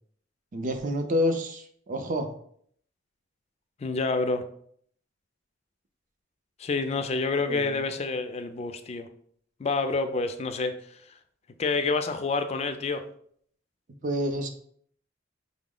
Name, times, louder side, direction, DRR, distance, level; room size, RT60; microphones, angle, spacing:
voice 1, 0.5-2.3 7.5-7.8 14.0-14.5, left 1 dB, 40° right, 6 dB, 0.5 m, -28 dB
voice 2, 3.8-4.4 6.6-9.1 9.6-11.0 11.6-13.0, left 3 dB, 30° left, 8 dB, 0.3 m, -28 dB
5.8 x 2.0 x 3.7 m, 0.64 s
head